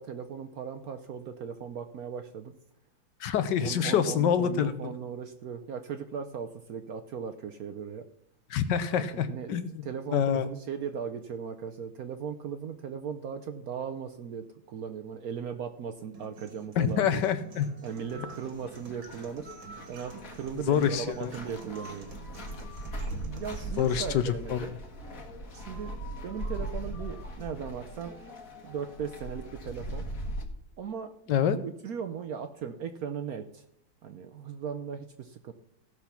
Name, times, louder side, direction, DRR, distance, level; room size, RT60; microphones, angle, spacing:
voice 1, 0.0-2.5 3.6-8.0 8.9-17.2 17.8-19.5 19.9-22.1 23.2-24.8 25.5-25.9 26.2-28.2 28.6-30.1 30.8-31.1 31.8-33.6 34.0-35.5, right 7 dB, 65° right, 8 dB, 0.9 m, -38 dB
voice 2, 3.2-4.9 8.5-9.8 10.1-10.5 16.8-17.7 20.7-21.3 23.8-24.7 31.3-31.6, left 8 dB, 70° left, 12 dB, 1.3 m, -26 dB
sound 1, 16.1-24.1, right 5 dB, 80° right, 2.4 m, -49 dB
sound 2, 17.9-30.4, right 1 dB, 45° left, 1.8 m, -40 dB
15.5 x 6.1 x 5.8 m, 0.73 s
omnidirectional pair, 2.1 m